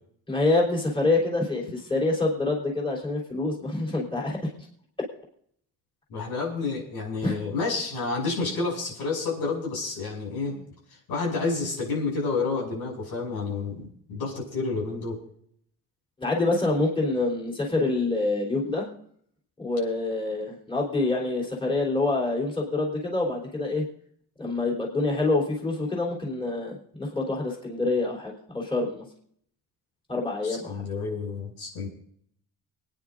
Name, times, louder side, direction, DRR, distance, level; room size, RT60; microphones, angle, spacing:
voice 1, 0.3-4.5 7.2-7.4 16.2-18.9 19.6-23.8 24.4-29.0 30.1-30.9, left 2 dB, 15° left, -2 dB, 3.5 m, -26 dB
voice 2, 6.1-10.5 11.1-15.2 30.4-31.9, left 4 dB, 90° left, -1 dB, 6.3 m, -29 dB
28.5 x 9.8 x 2.6 m, 0.64 s
cardioid pair, 135°, 38 cm